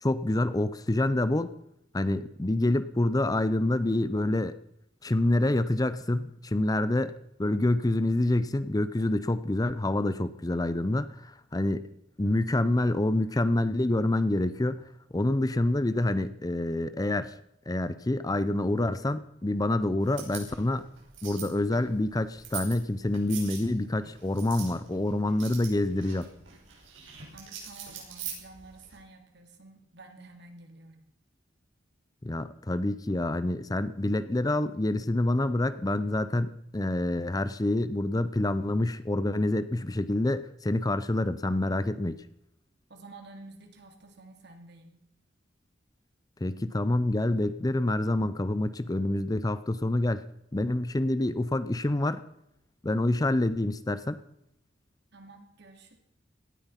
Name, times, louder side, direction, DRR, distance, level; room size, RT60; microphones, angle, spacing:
voice 1, 0.0-1.5 1.9-4.6 5.0-7.1 7.4-11.9 12.2-14.8 15.1-17.3 17.7-20.9 21.2-26.3 32.2-42.2 46.4-50.2 50.5-52.2 52.8-54.2, left 1 dB, 20° left, 13 dB, 0.6 m, -27 dB
sound 1, 20.0-29.0, right 7 dB, 85° right, 5.7 m, -44 dB
voice 2, 27.3-31.0 42.9-45.0 55.1-56.0, right 2 dB, 60° right, 4 dB, 3.1 m, -50 dB
18.0 x 13.0 x 5.8 m, 0.78 s
head